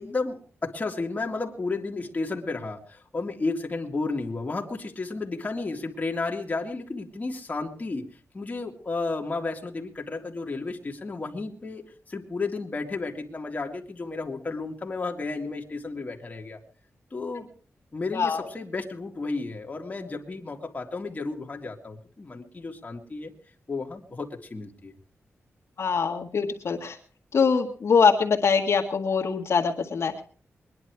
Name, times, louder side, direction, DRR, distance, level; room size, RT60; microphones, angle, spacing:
voice 1, 0.0-8.0 8.3-11.8 12.1-16.6 17.1-17.5 17.9-23.3 23.7-24.9, left 3 dB, 30° left, 1 dB, 2.2 m, -32 dB
voice 2, 18.1-18.4 25.8-27.0 27.3-30.2, left 5 dB, 65° left, 1 dB, 1.8 m, -23 dB
22.0 x 10.5 x 4.7 m, 0.41 s
wide cardioid pair, 115°, 5 cm